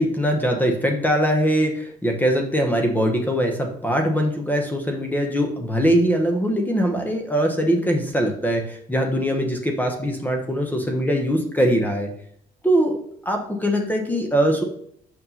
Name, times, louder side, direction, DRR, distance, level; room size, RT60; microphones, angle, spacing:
voice 1, 0.0-12.1 12.6-13.0 13.2-14.6, equal, 10° left, 3 dB, 1.1 m, -22 dB
5.5 x 5.4 x 5.6 m, 0.68 s
cardioid pair, 110°, 17 cm